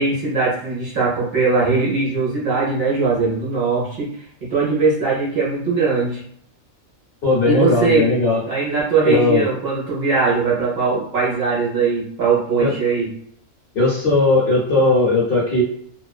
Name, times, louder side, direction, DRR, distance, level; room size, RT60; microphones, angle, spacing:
voice 1, 0.0-4.2 4.5-6.2 7.4-8.1 8.5-13.1, right 4 dB, 55° right, -6 dB, 0.9 m, -20 dB
voice 2, 7.2-8.4 9.0-9.5 12.6-12.7 13.7-15.6, left 2 dB, 55° left, -4 dB, 0.7 m, -17 dB
2.3 x 2.3 x 2.3 m, 0.66 s
omnidirectional pair, 1.3 m